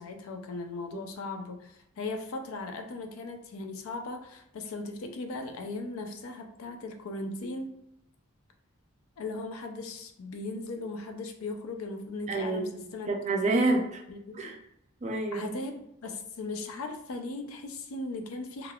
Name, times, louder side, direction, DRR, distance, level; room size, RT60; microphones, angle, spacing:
voice 1, 0.0-7.8 9.2-13.1 14.1-14.5 15.3-18.7, left 2 dB, 85° left, 6 dB, 0.4 m, -38 dB
voice 2, 12.3-14.0 14.4-14.6 15.0-15.5, right 2 dB, 35° right, 2 dB, 0.4 m, -28 dB
3.4 x 2.3 x 2.3 m, 0.79 s
head